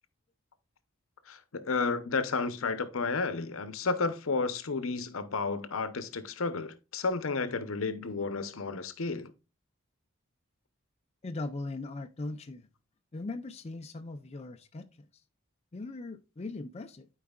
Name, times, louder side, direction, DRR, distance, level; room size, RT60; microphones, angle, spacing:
voice 1, 1.3-9.3, left 4 dB, 75° left, 0.8 m, -32 dB
voice 2, 11.2-12.7 13.1-15.1 15.7-17.1, left 2 dB, 30° left, 0.5 m, -39 dB
12.0 x 4.7 x 2.3 m
head